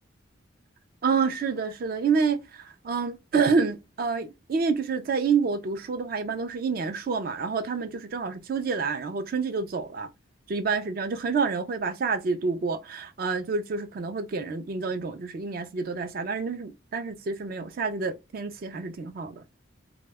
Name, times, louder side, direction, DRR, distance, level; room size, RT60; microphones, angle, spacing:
voice 1, 1.0-10.1 10.5-19.4, right 5 dB, 50° right, 0.3 m, -28 dB
2.8 x 2.1 x 3.3 m
head